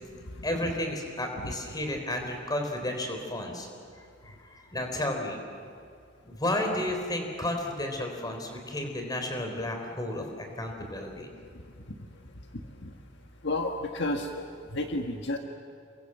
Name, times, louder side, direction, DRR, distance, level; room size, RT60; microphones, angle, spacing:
voice 1, 0.4-3.7 4.2-5.4 6.2-11.3, left 1 dB, 20° left, 3 dB, 4.1 m, -32 dB
voice 2, 13.4-15.4, left 2 dB, 60° left, 3 dB, 1.6 m, -31 dB
29.5 x 23.0 x 7.9 m, 2.3 s
head